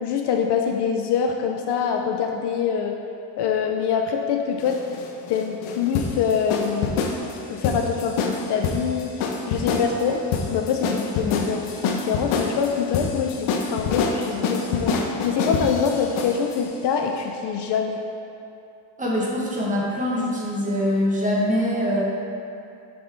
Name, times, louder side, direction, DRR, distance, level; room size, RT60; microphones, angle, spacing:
voice 1, 0.0-3.0 3.4-4.8 5.3-7.0 7.5-10.2 10.5-18.0, left 6 dB, 55° left, 3 dB, 0.5 m, -25 dB
sound 1, 4.6-16.6, left 4 dB, 75° left, 0.8 m, -26 dB
voice 2, 19.0-22.0, equal, 15° right, -5 dB, 1.1 m, -23 dB
6.8 x 5.4 x 3.3 m, 2.7 s
cardioid pair, 140°, 50 cm